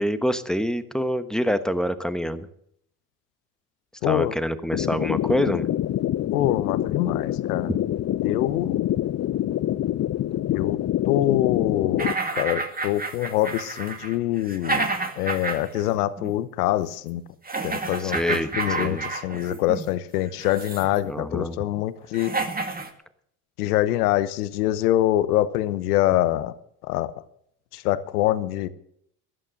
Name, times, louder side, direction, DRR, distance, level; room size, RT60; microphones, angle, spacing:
voice 1, 0.0-2.5 4.0-5.7 18.0-18.5 18.8-19.1 21.1-21.5, equal, ahead, 1.2 m, -26 dB
voice 2, 4.0-4.3 6.3-7.7 8.2-8.9 10.5-10.8 11.1-14.9 15.2-17.2 17.6-22.3 23.6-26.5 26.9-27.1 27.7-28.7, left 14 dB, 85° left, 0.9 m, -25 dB
sound 1, 4.7-12.1, left 12 dB, 35° left, 0.6 m, -26 dB
sound 2, 12.0-15.9 16.2-16.3 17.4-19.9 20.4-21.0 21.7-21.8 22.1-22.9, right 3 dB, 20° right, 2.2 m, -30 dB
15.0 x 11.5 x 6.5 m
hypercardioid pair, 65°, 45 cm